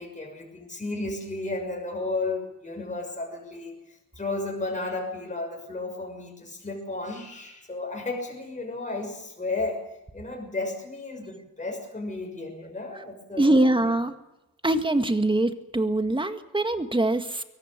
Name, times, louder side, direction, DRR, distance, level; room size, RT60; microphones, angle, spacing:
voice 1, 0.0-3.7 4.1-9.8 10.1-13.9, left 2 dB, 20° left, 1 dB, 6.5 m, -33 dB
voice 2, 13.4-14.1 14.6-17.4, right 1 dB, 15° right, 8 dB, 1.8 m, -23 dB
22.5 x 18.5 x 8.1 m, 0.95 s
cardioid pair, 120°, 34 cm